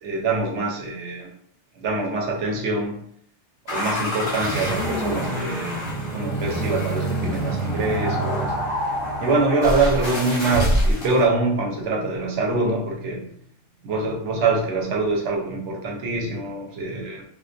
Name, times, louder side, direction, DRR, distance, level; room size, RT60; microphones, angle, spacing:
voice 1, 0.0-1.3 1.8-3.0 3.7-8.5 9.2-13.2 13.8-17.2, right 3 dB, 90° right, 0 dB, 1.0 m, -24 dB
sound 1, 3.7-11.2, equal, 30° left, 0.6 m, -26 dB
2.2 x 2.2 x 2.5 m, 0.66 s
omnidirectional pair, 1.2 m